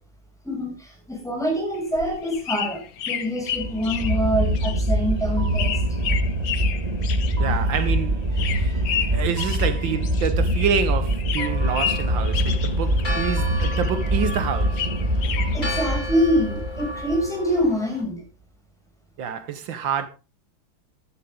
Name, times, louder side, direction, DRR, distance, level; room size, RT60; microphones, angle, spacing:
voice 1, 0.4-5.7 8.5-9.3 15.5-18.2, equal, ahead, 6.6 m, -25 dB
sound 1, 1.7-10.8 11.1-13.3 13.6-15.6, left 9 dB, 65° left, 1.6 m, -32 dB
sound 2, 3.5-17.7, right 1 dB, 20° right, 1.6 m, -24 dB
voice 2, 7.4-8.7 9.1-14.9 19.2-20.1, right 7 dB, 75° right, 1.8 m, -27 dB
Church bell, 11.4-18.0, left 2 dB, 25° left, 1.9 m, -35 dB
14.0 x 11.5 x 3.8 m
omnidirectional pair, 2.1 m